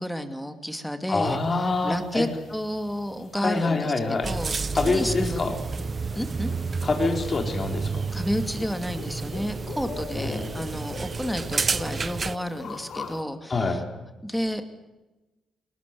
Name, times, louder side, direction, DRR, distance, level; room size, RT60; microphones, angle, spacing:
voice 1, 0.0-1.4 1.8-4.6 4.9-5.5 6.1-6.5 8.1-13.8 14.2-14.6, equal, 5° left, 8 dB, 2.6 m, -31 dB
voice 2, 1.1-2.3 3.3-4.3 4.8-5.6 6.8-8.1 10.2-10.5 13.5-13.8, left 3 dB, 35° left, 3 dB, 3.8 m, -26 dB
sound 1, 1.2-13.2, left 5 dB, 60° left, 3.1 m, -43 dB
sound 2, 4.2-12.4, right 4 dB, 35° right, 0.8 m, -30 dB
20.0 x 19.5 x 9.5 m, 1.1 s
cardioid pair, 85°, 0 cm